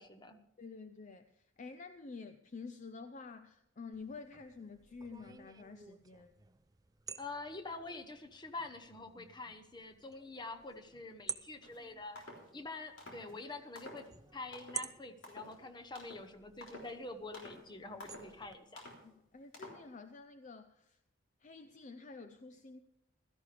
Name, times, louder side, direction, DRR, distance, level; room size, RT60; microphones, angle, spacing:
voice 1, 0.0-0.4 7.2-12.2 12.5-18.8, left 3 dB, 20° left, 7 dB, 1.0 m, -46 dB
voice 2, 0.6-6.3 19.0-21.0 21.4-22.8, left 4 dB, 40° left, 10 dB, 0.5 m, -49 dB
sound 1, 3.9-18.5, right 6 dB, 20° right, 0.5 m, -51 dB
sound 2, 11.6-11.8 12.2-12.5 13.0-13.3 13.8-14.1 14.5-14.9 15.2-15.6 15.9-16.3 16.6-17.0 17.3-17.6 18.0-18.3 18.8-19.0 19.5-19.9, left 1 dB, 70° left, 3.6 m, -51 dB
16.0 x 13.5 x 3.4 m, 0.83 s
head